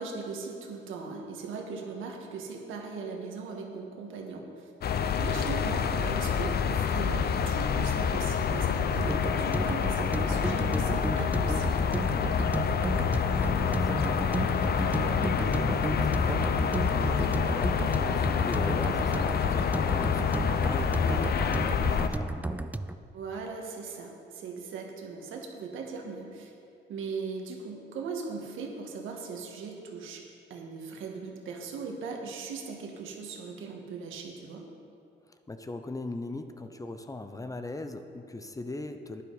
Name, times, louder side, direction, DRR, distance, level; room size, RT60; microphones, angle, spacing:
voice 1, 0.0-4.7 5.2-11.9 23.1-26.5 26.9-30.2 30.5-34.7, right 4 dB, 85° right, 1 dB, 1.7 m, -39 dB
sound 1, 4.8-22.1, left 7 dB, 50° left, 0.6 m, -27 dB
sound 2, 8.9-22.9, right 2 dB, 10° right, 0.3 m, -33 dB
voice 2, 12.6-22.7 35.5-39.2, left 2 dB, 15° left, 8 dB, 0.7 m, -40 dB
11.5 x 10.0 x 4.1 m, 2.6 s
cardioid pair, 90°, 20 cm